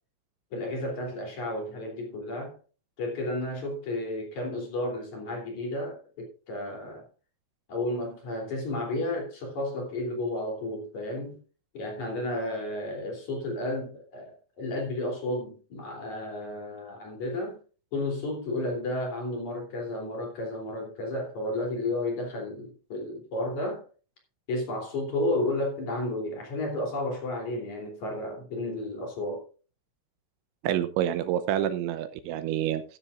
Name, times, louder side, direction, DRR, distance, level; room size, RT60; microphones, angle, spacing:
voice 1, 0.5-2.6 3.0-7.1 7.7-11.4 11.7-17.6 17.9-23.9 24.5-29.4, left 1 dB, 40° left, 4.2 m, -32 dB
voice 2, 30.6-32.8, right 11 dB, 80° right, 2.9 m, -28 dB
13.5 x 13.0 x 2.5 m
omnidirectional pair, 5.6 m